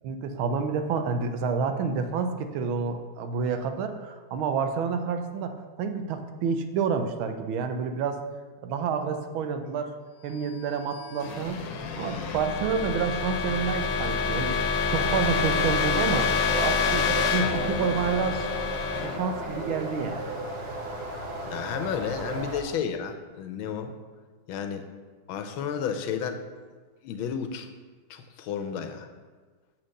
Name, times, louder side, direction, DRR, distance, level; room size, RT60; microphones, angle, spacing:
voice 1, 0.0-8.2 8.6-9.9 10.2-11.6 11.9-14.6 14.9-18.5 19.0-20.2, right 6 dB, 90° right, 7 dB, 1.5 m, -29 dB
sound 1, 10.5-20.3, left 5 dB, 70° left, 1.3 m, -28 dB
sound 2, 14.9-22.6, right 1 dB, 45° right, 0.9 m, -35 dB
voice 2, 21.5-23.9 24.5-24.9 25.3-26.4 27.0-27.7 28.1-29.1, left 7 dB, 85° left, 7 dB, 1.5 m, -32 dB
7.1 x 4.5 x 6.4 m, 1.4 s
omnidirectional pair, 2.2 m